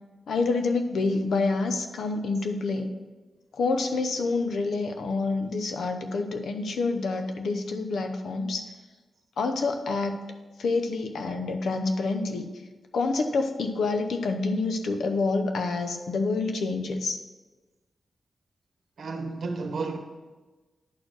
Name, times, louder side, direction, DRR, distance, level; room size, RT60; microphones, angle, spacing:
voice 1, 0.3-2.9 3.5-8.7 9.4-10.2 10.6-12.5 12.9-17.2, left 3 dB, 80° left, 0.7 m, -27 dB
voice 2, 19.0-20.0, right 3 dB, 60° right, 0.9 m, -32 dB
10.5 x 4.4 x 4.7 m
wide cardioid pair, 150°, 0 cm